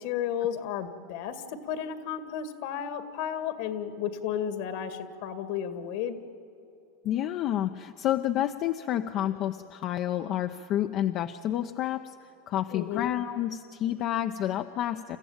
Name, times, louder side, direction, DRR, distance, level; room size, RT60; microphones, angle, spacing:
voice 1, 0.0-6.2 12.7-13.1, left 9 dB, 65° left, 9 dB, 2.0 m, -33 dB
voice 2, 7.0-12.1 12.5-15.2, left 12 dB, 50° left, 7 dB, 0.7 m, -29 dB
28.5 x 14.5 x 9.0 m, 2.8 s
hypercardioid pair, 110°, 0 cm